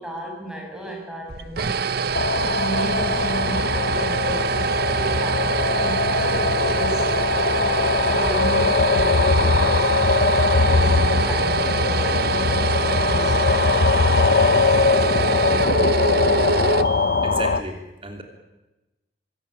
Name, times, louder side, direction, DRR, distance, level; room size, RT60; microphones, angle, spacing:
voice 1, 0.0-1.9 2.4-9.9 10.7-14.8, right 1 dB, 5° right, 0 dB, 7.1 m, -34 dB
sound 1, 1.3-17.5, right 5 dB, 60° right, 0.8 m, -25 dB
sound 2, 2.1-17.6, left 3 dB, 55° left, 0.9 m, -21 dB
voice 2, 17.2-18.2, right 2 dB, 30° right, 4 dB, 3.0 m, -33 dB
25.5 x 16.0 x 8.9 m, 1.0 s
head